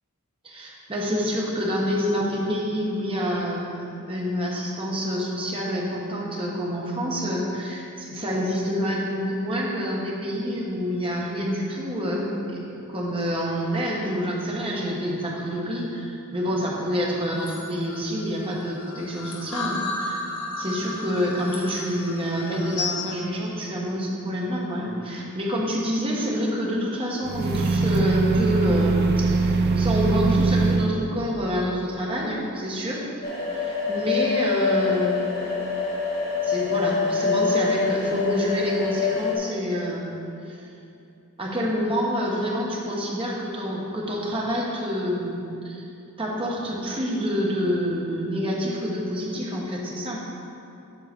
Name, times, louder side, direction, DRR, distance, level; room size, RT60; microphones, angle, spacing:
voice 1, 0.4-3.7 4.1-20.2 20.6-33.0 33.6-35.6 36.4-40.1 40.4-40.7 41.4-45.8 46.2-50.2, equal, 25° right, -3 dB, 1.2 m, -27 dB
sound 1, 17.4-23.1, left 3 dB, 85° left, 1.2 m, -33 dB
sound 2, 27.2-30.9, right 3 dB, 45° right, 0.4 m, -21 dB
sound 3, 33.2-39.3, left 5 dB, 45° left, 1.7 m, -25 dB
7.9 x 3.8 x 6.8 m, 2.7 s
head